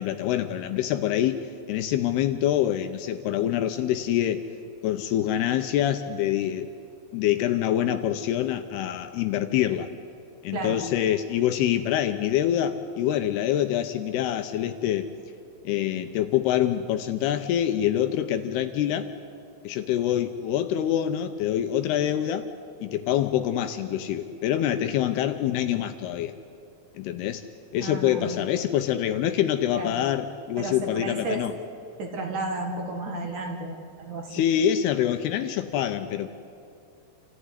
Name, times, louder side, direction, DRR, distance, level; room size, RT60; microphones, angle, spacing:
voice 1, 0.0-4.4 4.8-6.7 7.1-9.9 10.4-15.1 15.7-19.1 19.6-22.5 22.8-26.3 27.0-27.4 27.7-31.5 34.3-36.3, left 11 dB, 80° left, 8 dB, 2.5 m, -25 dB
voice 2, 27.8-28.3 29.8-30.0 30.6-31.4 32.0-34.5, right 2 dB, 55° right, 2 dB, 2.8 m, -33 dB
28.0 x 15.0 x 9.8 m, 2.6 s
omnidirectional pair, 5.1 m